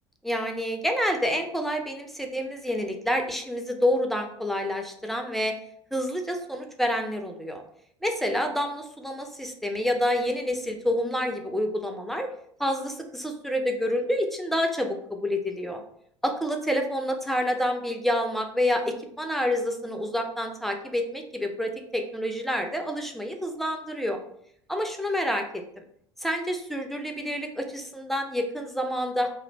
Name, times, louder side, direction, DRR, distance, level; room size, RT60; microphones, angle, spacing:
voice 1, 0.2-5.5 5.9-7.6 8.0-12.3 12.6-15.8 16.2-24.2 24.7-25.4 25.8-25.9 26.2-29.3, equal, ahead, 4 dB, 0.4 m, -28 dB
2.4 x 2.1 x 3.0 m, 0.68 s
figure-of-eight pair, 65°, 14 cm